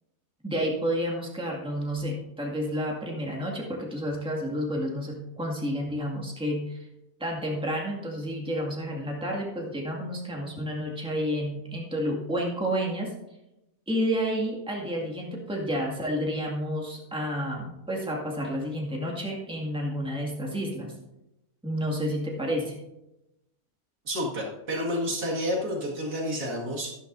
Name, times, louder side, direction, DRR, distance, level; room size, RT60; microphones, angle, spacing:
voice 1, 0.4-6.8 7.2-13.1 13.9-20.9 21.6-22.8, equal, 5° right, -2 dB, 2.0 m, -30 dB
voice 2, 24.0-26.9, equal, 75° right, -3 dB, 2.6 m, -30 dB
12.5 x 12.0 x 2.7 m, 0.92 s
omnidirectional pair, 1.7 m